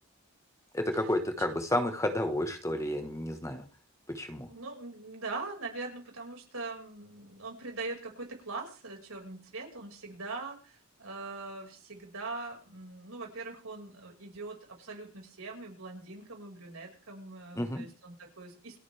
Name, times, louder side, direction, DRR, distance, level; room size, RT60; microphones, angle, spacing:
voice 1, 0.7-3.7 4.1-4.5 17.6-17.9, left 1 dB, 15° left, 6 dB, 1.1 m, -31 dB
voice 2, 4.5-18.8, right 3 dB, 80° right, 1 dB, 5.1 m, -42 dB
27.0 x 9.2 x 3.4 m, 0.39 s
head